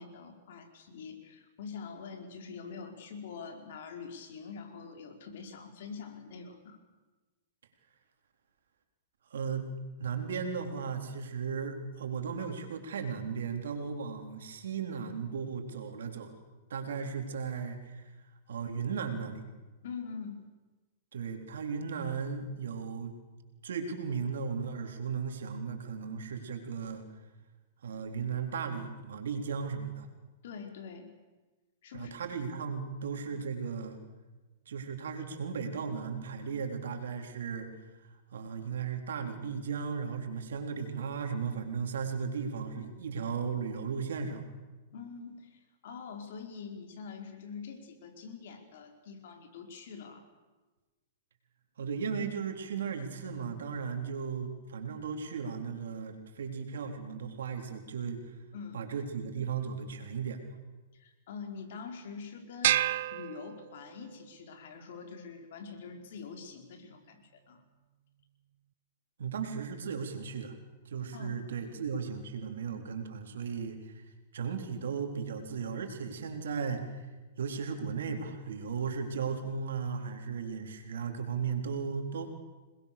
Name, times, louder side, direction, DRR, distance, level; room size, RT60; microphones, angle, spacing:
voice 1, 0.0-6.8 19.8-20.4 30.4-31.1 31.8-32.1 33.3-33.4 44.9-50.3 58.5-58.8 60.9-62.8 63.1-67.6 71.1-71.7, left 5 dB, 70° left, 5 dB, 4.4 m, -45 dB
voice 2, 9.3-9.7 10.0-16.3 16.7-18.0 18.5-19.4 21.1-23.1 23.6-27.0 27.8-30.1 31.9-34.0 34.7-37.7 38.3-44.4 51.8-58.2 58.7-60.4 69.2-70.5 70.9-74.0 74.3-77.1 77.4-82.3, right 6 dB, 85° right, 4 dB, 3.9 m, -36 dB
sound 1, 62.6-64.1, right 13 dB, 65° right, 0.7 m, -30 dB
27.0 x 21.0 x 6.9 m, 1.2 s
hypercardioid pair, 135°, 0 cm